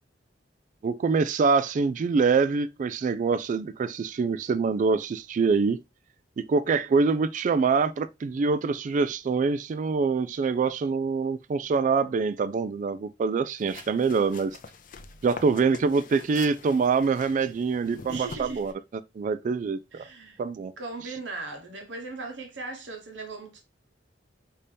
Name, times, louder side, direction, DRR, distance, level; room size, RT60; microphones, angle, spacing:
voice 1, 0.8-5.8 6.4-14.6 15.2-18.7 19.2-20.0 20.4-20.7, right 4 dB, 45° right, 0.3 m, -25 dB
sound 1, 13.6-18.7, left 4 dB, 50° left, 0.5 m, -45 dB
voice 2, 18.1-18.6 19.9-20.4 20.8-23.6, right 3 dB, 85° right, 1.1 m, -38 dB
5.2 x 2.8 x 3.3 m
head